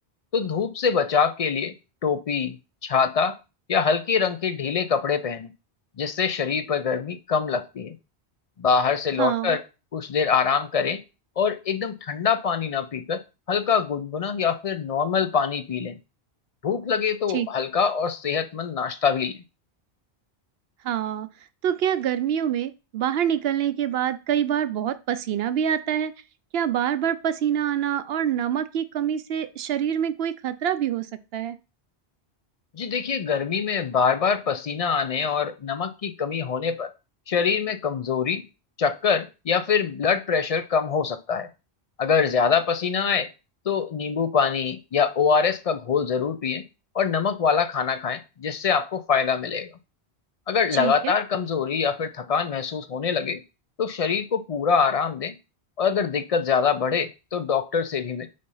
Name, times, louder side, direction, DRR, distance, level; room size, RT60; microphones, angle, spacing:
voice 1, 0.3-1.7 2.0-3.4 3.7-5.5 6.0-8.0 8.6-9.6 9.9-11.0 11.4-13.2 13.5-16.0 16.6-19.4 32.7-36.9 37.3-38.4 38.8-41.5 42.0-43.3 43.7-46.6 46.9-49.7 50.5-53.4 53.8-55.3 55.8-58.3, left 6 dB, 50° left, 0.5 m, -24 dB
voice 2, 9.2-9.6 17.3-17.5 20.8-21.3 21.6-26.1 26.5-31.6 50.7-51.1, right 9 dB, 70° right, 0.8 m, -26 dB
5.1 x 3.9 x 5.5 m
omnidirectional pair, 1.1 m